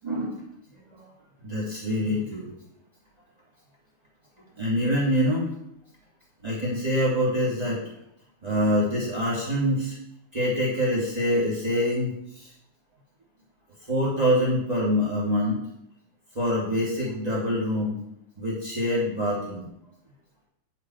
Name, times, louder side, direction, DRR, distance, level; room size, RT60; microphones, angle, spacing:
voice 1, 0.0-0.4 0.9-1.1 1.4-2.5 4.6-5.5 6.4-7.9 8.4-10.0 10.3-12.5 13.8-15.6 16.3-18.0 18.4-19.7, equal, 10° right, -6 dB, 2.5 m, -25 dB
9.0 x 6.6 x 4.8 m, 0.74 s
omnidirectional pair, 4.4 m